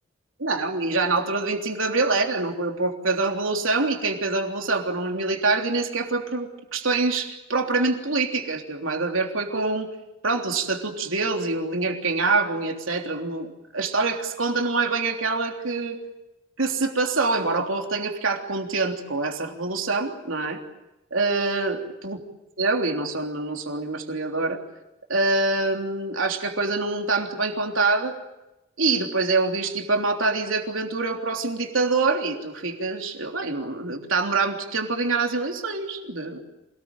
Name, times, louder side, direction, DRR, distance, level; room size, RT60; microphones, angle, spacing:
voice 1, 0.4-9.9 10.2-16.0 16.6-20.6 21.1-22.2 22.6-24.6 25.1-28.1 28.8-36.4, right 3 dB, 85° right, 3 dB, 3.4 m, -25 dB
27.0 x 19.5 x 9.0 m, 0.96 s
head